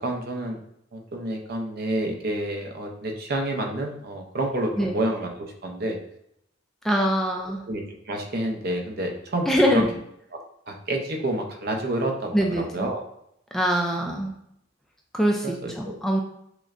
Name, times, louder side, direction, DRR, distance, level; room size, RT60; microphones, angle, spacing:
voice 1, 0.0-0.6 0.9-6.0 7.7-9.8 10.3-10.4 10.7-13.1 15.4-15.9, right 1 dB, 55° right, 2 dB, 0.6 m, -29 dB
voice 2, 6.8-7.6 9.5-10.0 12.3-12.9 13.5-14.3 15.1-16.2, equal, ahead, 0 dB, 0.3 m, -23 dB
6.0 x 2.1 x 2.5 m, 0.75 s
head